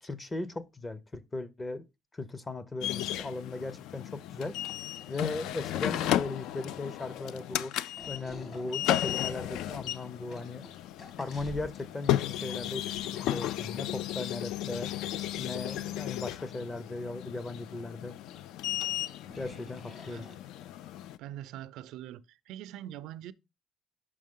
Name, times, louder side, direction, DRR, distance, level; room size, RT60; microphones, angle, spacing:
voice 1, 0.0-1.8 2.1-4.6 5.1-7.7 8.1-10.6 11.2-12.9 13.2-14.9 15.4-18.1 19.4-20.3, left 3 dB, 15° left, 0.5 m, -37 dB
sound 1, 2.8-21.2, left 13 dB, 80° left, 0.3 m, -34 dB
sound 2, 6.6-7.4 8.0-12.0 12.5-14.4 14.7-14.9 17.3-17.4 17.8-17.9 18.3-18.4 19.2-20.8, left 2 dB, 45° left, 1.5 m, -50 dB
voice 2, 21.2-23.3, right 12 dB, 80° right, 0.4 m, -43 dB
6.2 x 5.8 x 3.7 m
cardioid pair, 160°, 0 cm